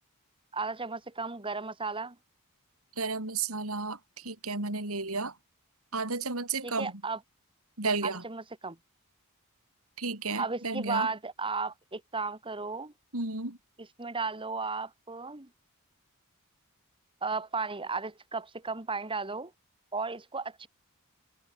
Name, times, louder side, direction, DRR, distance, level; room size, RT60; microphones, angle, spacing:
voice 1, 0.5-2.2 6.6-7.2 8.0-8.8 10.4-12.9 14.0-15.5 17.2-19.5 19.9-20.7, right 4 dB, 25° right, 2.1 m, -34 dB
voice 2, 3.0-5.3 5.9-6.9 7.8-8.2 10.0-11.1 13.1-13.6, right 3 dB, 75° right, 4.9 m, -32 dB
head